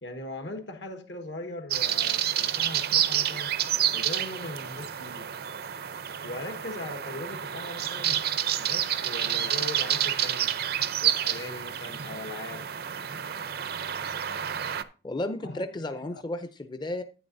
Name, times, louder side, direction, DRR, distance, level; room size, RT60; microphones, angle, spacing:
voice 1, 0.0-3.5 3.9-5.3 6.2-10.5 11.0-12.6 15.4-16.2, left 2 dB, 75° left, 1.4 m, -40 dB
sound 1, 1.7-14.8, right 10 dB, 60° right, 0.5 m, -29 dB
voice 2, 15.0-17.0, left 1 dB, 25° left, 0.5 m, -33 dB
10.5 x 9.3 x 2.6 m
head